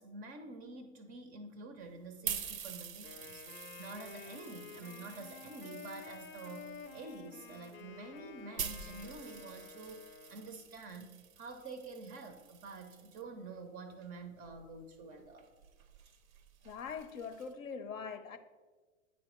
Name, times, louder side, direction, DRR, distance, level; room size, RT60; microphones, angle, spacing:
voice 1, 0.0-15.5, right 3 dB, 25° right, 0.4 m, -48 dB
sound 1, 1.8-13.2 14.0-17.5, right 7 dB, 90° right, 0.5 m, -47 dB
Wind instrument woodwind instrument, 3.0-10.7, left 7 dB, 30° left, 0.5 m, -51 dB
voice 2, 16.6-18.4, left 6 dB, 75° left, 0.7 m, -42 dB
9.3 x 4.1 x 3.0 m
figure-of-eight pair, 95°, 40 cm